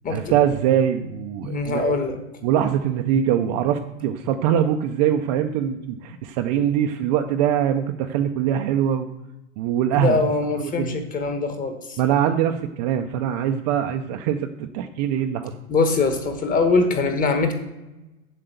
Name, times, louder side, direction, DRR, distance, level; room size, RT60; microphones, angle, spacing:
voice 1, 0.1-1.9 2.4-9.1 9.6-10.2 10.6-10.9 12.0-15.5, right 9 dB, 30° right, 6 dB, 0.5 m, -23 dB
voice 2, 1.4-2.2 9.9-12.0 15.7-17.5, left 3 dB, 20° left, 7 dB, 1.2 m, -22 dB
7.7 x 6.8 x 7.9 m, 1.0 s
supercardioid pair, 145°, 44 cm